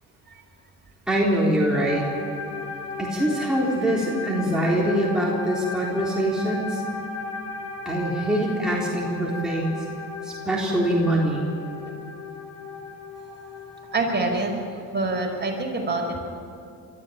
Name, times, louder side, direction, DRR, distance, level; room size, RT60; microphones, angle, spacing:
voice 1, 1.1-2.1 3.0-6.9 7.9-9.8 10.2-11.5, right 1 dB, ahead, -5 dB, 4.0 m, -24 dB
sound 1, 1.7-13.9, left 3 dB, 45° left, 5.6 m, -35 dB
voice 2, 13.9-14.5 14.9-16.0, right 3 dB, 30° right, 1 dB, 5.5 m, -25 dB
23.0 x 14.0 x 8.8 m, 2.5 s
cardioid pair, 90°, 36 cm